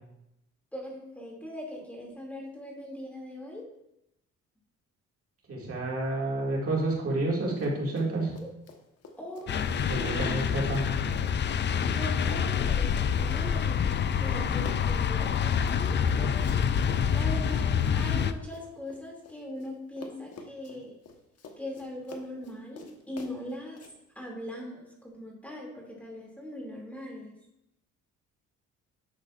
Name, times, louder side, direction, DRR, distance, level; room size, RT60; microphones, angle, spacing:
voice 1, 0.7-3.7 9.2-10.7 11.9-13.8 14.2-20.9 21.6-23.8 24.1-27.3, left 1 dB, 5° left, -2 dB, 2.5 m, -41 dB
voice 2, 5.5-8.3 9.9-10.8, right 2 dB, 50° right, -3 dB, 2.2 m, -29 dB
Run, 7.5-8.1 8.3-19.7 20.0-23.9, left 4 dB, 55° left, 1.2 m, -49 dB
sound 1, 9.5-18.3, left 7 dB, 35° left, 0.4 m, -27 dB
10.5 x 6.5 x 2.5 m, 0.84 s
cardioid pair, 90°, 30 cm